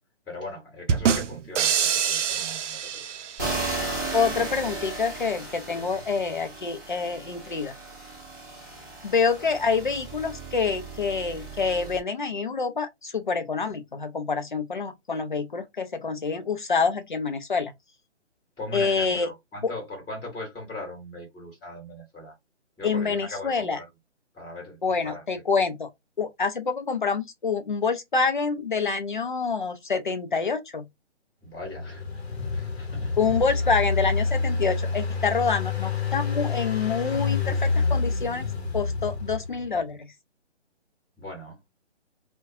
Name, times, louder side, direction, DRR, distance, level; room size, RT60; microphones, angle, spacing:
voice 1, 0.3-3.0 3.3-3.4 5.7-6.0 18.6-22.3 22.8-23.8 24.3-25.2 31.4-32.2 32.5-33.1 41.2-41.6, left 2 dB, 5° left, 1.0 m, -39 dB
sound 1, 0.9-3.7, right 7 dB, 85° right, 0.5 m, -25 dB
sound 2, 3.4-12.0, right 3 dB, 15° right, 0.6 m, -35 dB
voice 2, 4.1-7.7 9.0-17.7 18.7-19.3 19.6-19.7 22.8-23.8 24.8-25.9 26.2-30.8 33.2-38.5 38.7-40.1, left 5 dB, 45° left, 0.4 m, -27 dB
Engine, 31.6-39.6, left 4 dB, 60° left, 0.8 m, -28 dB
2.4 x 2.2 x 2.5 m
hypercardioid pair, 175°, 35 cm